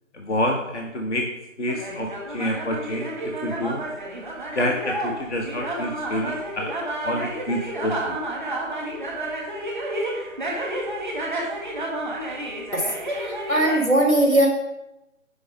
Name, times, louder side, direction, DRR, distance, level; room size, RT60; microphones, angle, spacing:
voice 1, 0.1-1.3 1.6-3.8 4.5-6.7 7.0-8.2, left 1 dB, 60° left, 2 dB, 1.1 m, -28 dB
sound 1, 1.7-13.8, right 1 dB, ahead, 0.9 m, -30 dB
voice 2, 12.7-14.5, right 1 dB, 85° left, -1 dB, 2.7 m, -20 dB
6.5 x 5.5 x 6.1 m, 0.94 s
figure-of-eight pair, 150°, 40 cm